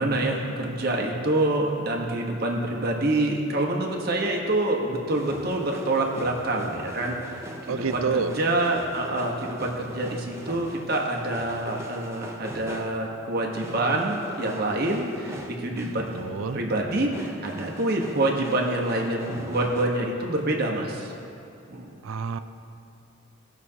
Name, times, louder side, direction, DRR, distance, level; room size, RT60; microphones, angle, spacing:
voice 1, 0.0-16.1 16.5-21.1 21.7-21.9, right 1 dB, 50° right, 0 dB, 1.2 m, -26 dB
sound 1, 5.1-13.2 13.5-19.9, right 1 dB, 15° right, 0.5 m, -41 dB
voice 2, 7.7-8.3 16.1-16.6 22.0-22.4, right 5 dB, 85° right, 11 dB, 0.4 m, -28 dB
18.0 x 6.1 x 2.8 m, 2.8 s
head